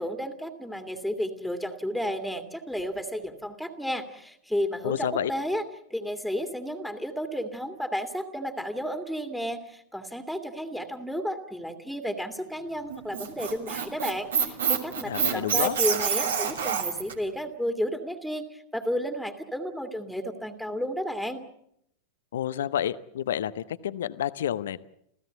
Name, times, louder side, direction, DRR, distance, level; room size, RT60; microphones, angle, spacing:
voice 1, 0.0-5.6 5.9-21.4, equal, ahead, 6 dB, 2.1 m, -32 dB
voice 2, 4.8-5.3 15.0-15.8 22.3-24.8, left 10 dB, 60° left, 15 dB, 0.8 m, -29 dB
Squeak, 12.9-17.1, right 7 dB, 65° right, 2.7 m, -27 dB
28.0 x 16.0 x 8.0 m, 0.73 s
figure-of-eight pair, 90°, 0 cm